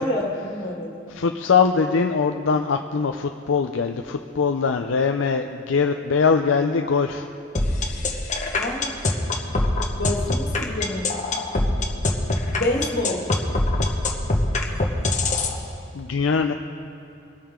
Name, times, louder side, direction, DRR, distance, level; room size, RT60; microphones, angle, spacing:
voice 1, 0.0-1.0 8.6-8.9 10.0-11.1 12.6-13.2, left 1 dB, 60° left, -1 dB, 2.1 m, -27 dB
voice 2, 1.1-7.3 15.9-16.5, left 5 dB, 85° left, 5 dB, 0.5 m, -22 dB
sound 1, 7.5-15.5, left 2 dB, 40° left, 1.3 m, -22 dB
23.5 x 8.8 x 3.7 m, 2.8 s
head